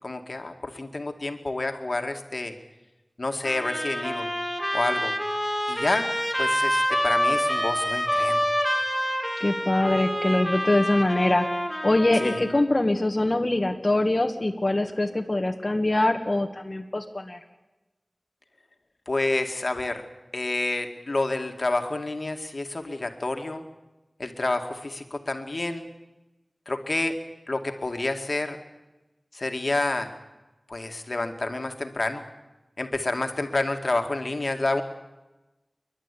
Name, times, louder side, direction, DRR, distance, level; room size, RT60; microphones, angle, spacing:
voice 1, 0.0-2.5 3.2-4.3 4.7-5.1 5.7-6.1 6.4-8.5 12.2-12.4 19.1-20.1 20.3-23.6 24.2-25.9 26.7-27.2 27.5-28.6 29.3-30.1 30.7-32.2 32.8-34.8, left 2 dB, 65° left, 5 dB, 2.1 m, -29 dB
Trumpet, 3.4-12.6, equal, 5° right, 4.6 m, -27 dB
voice 2, 9.4-11.4 11.8-17.4, left 2 dB, 40° left, 3 dB, 1.7 m, -23 dB
29.0 x 11.5 x 9.9 m, 1.0 s
wide cardioid pair, 55°, 0 cm